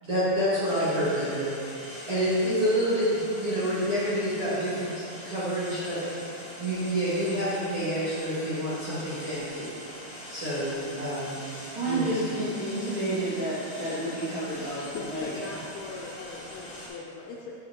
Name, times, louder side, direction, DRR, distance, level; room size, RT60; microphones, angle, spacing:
voice 1, 0.0-4.9 5.2-9.7 10.3-11.4 11.8-12.2, equal, 55° right, -13 dB, 1.7 m, -28 dB
sound 1, 0.6-16.9, equal, 45° left, 1.7 m, -43 dB
voice 2, 11.7-15.3, right 1 dB, 70° right, -12 dB, 1.2 m, -30 dB
voice 3, 14.8-17.6, left 3 dB, 80° left, -2 dB, 2.3 m, -40 dB
7.9 x 6.4 x 2.8 m, 2.5 s
omnidirectional pair, 4.9 m